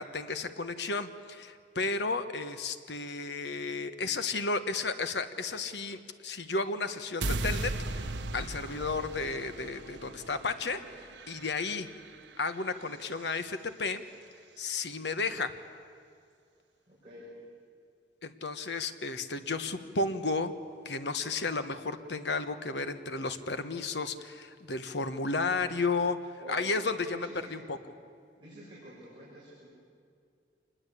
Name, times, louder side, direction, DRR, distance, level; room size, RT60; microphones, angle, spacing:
voice 1, 0.0-8.0 8.3-10.8 11.3-11.9 12.4-14.0 14.6-15.5 18.2-20.5 20.8-26.2 26.5-27.8, left 3 dB, 70° left, 10 dB, 1.3 m, -33 dB
sound 1, 7.2-13.4, right 2 dB, 85° right, 1.2 m, -38 dB
voice 2, 16.9-17.3 26.4-26.7 27.1-27.5 28.4-29.7, equal, 30° right, -9 dB, 6.5 m, -48 dB
26.0 x 20.5 x 8.5 m, 2.2 s
head